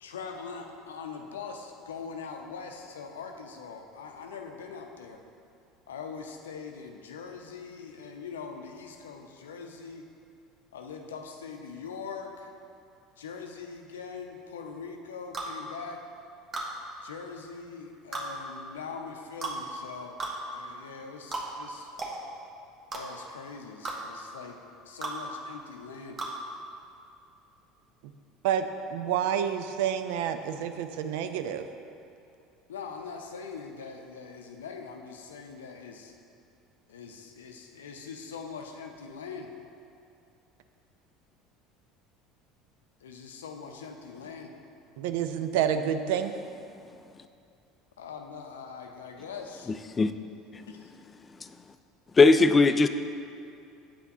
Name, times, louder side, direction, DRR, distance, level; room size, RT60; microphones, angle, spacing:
voice 1, 0.0-5.2 5.9-10.1 10.7-12.5 13.2-16.0 17.0-20.2 20.5-22.0 22.9-24.6 24.8-26.2 32.7-36.1 36.9-39.5 43.0-44.5 48.0-49.7 50.7-50.9, left 5 dB, 80° left, 4 dB, 0.5 m, -42 dB
sound 1, 15.3-15.5 16.5-16.7 18.1-18.3 19.4-19.6 20.2-20.4 21.3-21.5 22.0-22.2 22.9-23.0 23.8-24.0 25.0-25.2 26.2-26.3, right 3 dB, 35° right, 1.0 m, -34 dB
voice 2, 28.4-31.7 45.0-46.3, right 9 dB, 65° right, 9 dB, 0.3 m, -29 dB
voice 3, 52.2-52.9, left 3 dB, 25° left, 10 dB, 0.3 m, -18 dB
8.3 x 5.8 x 2.7 m, 2.6 s
hypercardioid pair, 70°, 0 cm